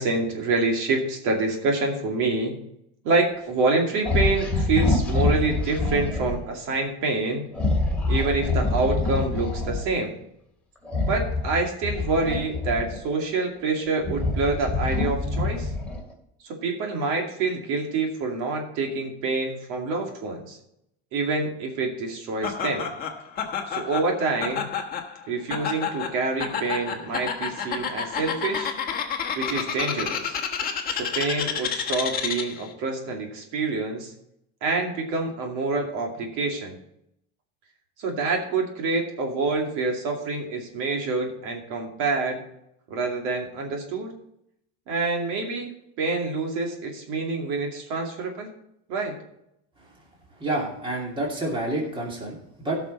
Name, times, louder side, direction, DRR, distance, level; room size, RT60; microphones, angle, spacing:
voice 1, 0.0-2.5 3.0-7.5 8.1-10.1 11.1-15.7 16.4-20.6 21.1-22.9 23.7-24.7 25.3-28.7 29.4-30.4 30.9-34.1 34.6-36.7 38.0-42.4 42.9-44.1 44.9-45.7 46.0-48.5 48.9-49.2, right 3 dB, 65° right, 1 dB, 2.5 m, -27 dB
sound 1, 4.0-6.4 7.5-9.9 10.9-13.2 13.7-16.1, left 3 dB, 5° left, 2.2 m, -26 dB
Laughter, 22.4-32.7, left 7 dB, 25° left, 1.4 m, -30 dB
voice 2, 50.4-52.8, right 1 dB, 15° right, -1 dB, 2.5 m, -28 dB
15.5 x 6.1 x 4.1 m, 0.78 s
cardioid pair, 160°, 32 cm